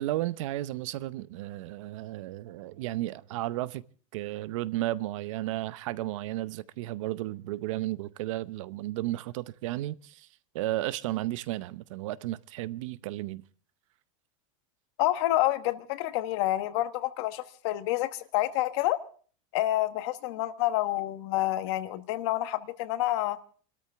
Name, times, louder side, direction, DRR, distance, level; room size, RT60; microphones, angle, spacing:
voice 1, 0.0-3.8 4.1-10.3 10.5-13.4, right 16 dB, 65° right, 0.7 m, -33 dB
voice 2, 15.0-19.0 19.5-23.4, left 15 dB, 55° left, 1.3 m, -28 dB
27.0 x 13.5 x 3.4 m
supercardioid pair, 170°, 18 cm